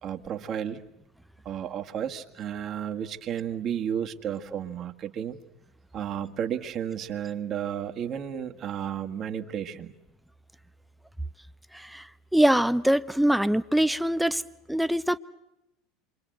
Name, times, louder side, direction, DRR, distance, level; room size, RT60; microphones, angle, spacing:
voice 1, 0.0-0.8 1.5-5.4 5.9-9.9, right 9 dB, 40° right, 1.9 m, -32 dB
voice 2, 11.7-12.1 12.3-14.4 14.7-15.2, right 1 dB, ahead, 1.0 m, -23 dB
28.0 x 24.5 x 7.9 m
figure-of-eight pair, 75°, 0 cm